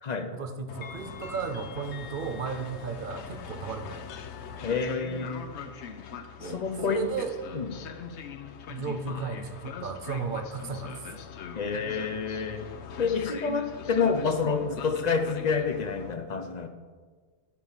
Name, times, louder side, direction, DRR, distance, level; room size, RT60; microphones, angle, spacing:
voice 1, 0.3-4.1 6.4-7.3 8.7-11.1, right 5 dB, 55° right, 8 dB, 0.8 m, -35 dB
Train, 0.7-16.1, left 6 dB, 90° left, 1.0 m, -41 dB
voice 2, 4.6-5.5 6.4-7.1 7.5-7.7 11.5-12.6 13.0-16.7, left 5 dB, 45° left, 7 dB, 0.8 m, -28 dB
9.6 x 4.5 x 7.3 m, 1.5 s
omnidirectional pair, 1.1 m